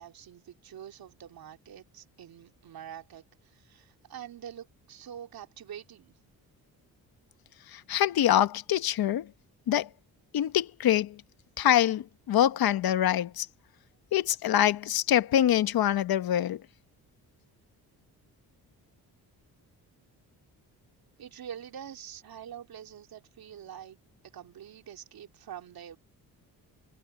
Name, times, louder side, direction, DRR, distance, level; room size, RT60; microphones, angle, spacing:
voice 1, 0.0-6.1 21.2-24.0 24.2-26.0, right 9 dB, 70° right, 2.9 m, -45 dB
voice 2, 7.7-9.3 9.7-9.9 10.3-11.2 11.6-13.5 14.1-16.6, left 11 dB, 70° left, 1.3 m, -25 dB
cardioid pair, 95°, 38 cm